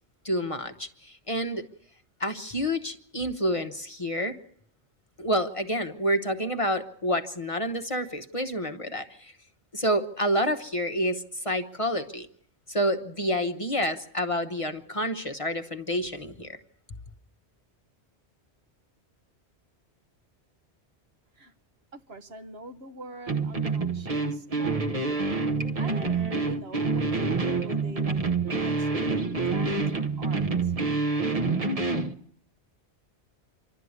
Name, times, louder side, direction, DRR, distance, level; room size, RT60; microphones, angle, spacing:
voice 1, 0.2-1.7 2.2-4.4 5.2-9.3 9.7-12.3 12.7-16.6, equal, 30° left, 0.9 m, -28 dB
voice 2, 21.9-24.8 25.8-28.2 28.6-30.7, right 2 dB, 65° right, 1.4 m, -44 dB
sound 1, 23.3-32.1, right 3 dB, 35° right, 1.0 m, -27 dB
26.5 x 12.0 x 9.5 m
omnidirectional pair, 1.1 m